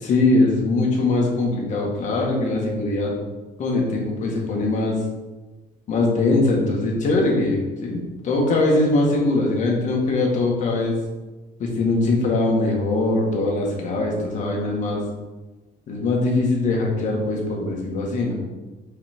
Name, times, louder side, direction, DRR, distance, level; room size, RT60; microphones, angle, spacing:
voice 1, 0.0-3.1 3.6-5.0 5.9-11.0 11.6-15.0 15.9-18.3, left 2 dB, 45° left, -2 dB, 1.8 m, -21 dB
5.8 x 4.9 x 4.5 m, 1.2 s
cardioid pair, 145°, 17 cm